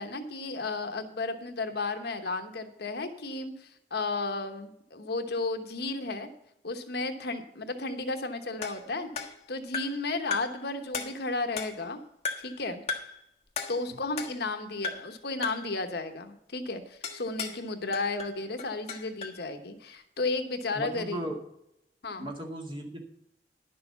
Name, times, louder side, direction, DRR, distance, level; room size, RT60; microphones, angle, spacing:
voice 1, 0.0-6.3 6.6-12.0 12.4-12.8 13.7-21.2 22.0-22.3, left 3 dB, 65° left, 6 dB, 1.1 m, -33 dB
sound 1, 8.6-10.1 10.3-10.6 10.9-11.9 12.2-12.6 12.9-13.2 13.6-14.6 14.8-15.2 15.4-15.7 17.0-17.6 17.9-19.4, left 5 dB, 35° left, 1.4 m, -37 dB
voice 2, 20.7-21.4 22.2-23.0, right 1 dB, 30° right, 1 dB, 2.1 m, -36 dB
10.5 x 6.8 x 6.9 m, 0.78 s
head